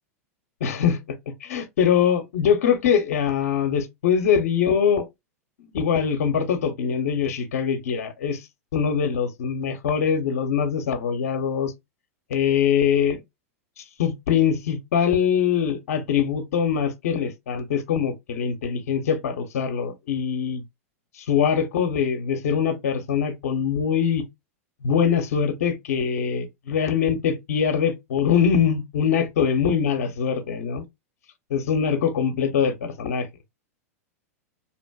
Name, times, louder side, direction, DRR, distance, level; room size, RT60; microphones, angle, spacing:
voice 1, 0.6-1.0 1.4-5.1 5.7-8.4 8.7-11.7 12.3-13.2 13.8-20.6 21.1-24.2 24.8-30.8 31.5-33.3, left 7 dB, 75° left, 0.6 m, -23 dB
2.8 x 2.5 x 2.2 m
hypercardioid pair, 115°, 8 cm